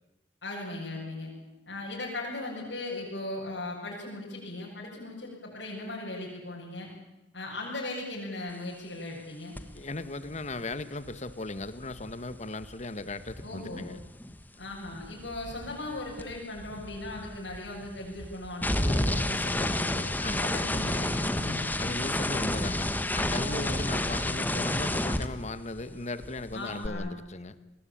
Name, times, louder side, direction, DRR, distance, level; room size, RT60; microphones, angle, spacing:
voice 1, 0.4-1.3 1.7-6.9 7.3-9.6 13.4-13.9 14.6-20.0 20.3-21.7 23.3-23.8 26.5-27.2, left 2 dB, 85° left, -5 dB, 7.2 m, -38 dB
sound 1, 9.6-9.8 10.0-14.4 14.7-26.0 26.2-26.9, left 1 dB, 10° left, 1.4 m, -31 dB
voice 2, 9.7-14.0 20.2-20.5 21.8-27.6, left 2 dB, 40° left, 13 dB, 1.4 m, -37 dB
27.5 x 20.5 x 8.7 m, 1.0 s
head